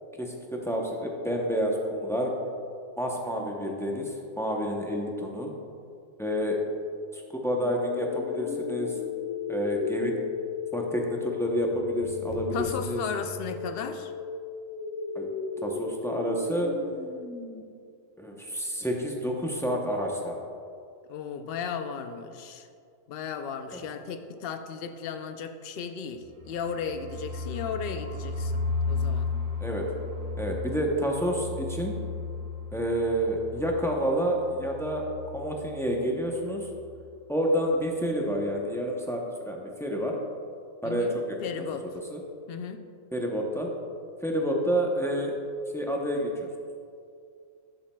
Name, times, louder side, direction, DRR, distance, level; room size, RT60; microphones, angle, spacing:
voice 1, 0.1-2.4 3.0-5.5 6.2-6.6 7.1-9.0 9.5-10.2 10.7-13.0 15.1-15.3 15.6-16.7 18.2-20.4 23.7-23.8 29.6-29.9 30.4-32.0 32.7-36.7 37.3-40.2 40.8-41.4 41.8-42.2 43.1-43.7 44.2-45.3 45.7-46.5, equal, 5° left, 0 dB, 0.4 m, -29 dB
sound 1, 7.6-17.6, left 6 dB, 35° left, 1.3 m, -35 dB
voice 2, 12.5-14.1 21.1-22.7 23.1-28.6 28.9-29.3 40.8-41.9 42.5-42.8, left 6 dB, 65° left, 8 dB, 0.6 m, -35 dB
sound 2, 26.2-35.9 36.1-36.3 36.5-37.0, left 4 dB, 60° right, 0.9 m, -34 dB
12.0 x 7.2 x 2.3 m, 2.3 s
omnidirectional pair, 1.4 m